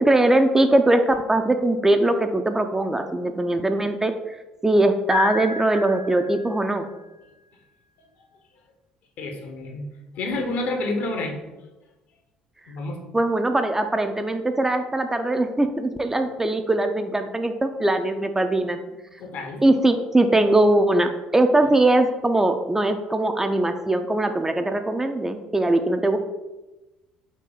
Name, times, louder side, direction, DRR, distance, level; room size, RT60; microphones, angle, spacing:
voice 1, 0.0-4.4 4.6-6.9 13.1-18.8 19.6-26.2, right 2 dB, 15° right, 7 dB, 0.4 m, -21 dB
Piano, 5.1-7.0, left 6 dB, 70° right, 1.0 m, -32 dB
voice 2, 9.2-9.8 10.2-11.4 12.7-13.0 19.2-19.6, left 2 dB, 60° left, 3 dB, 0.8 m, -29 dB
4.2 x 2.7 x 3.8 m, 1.1 s
hypercardioid pair, 55°, 3 cm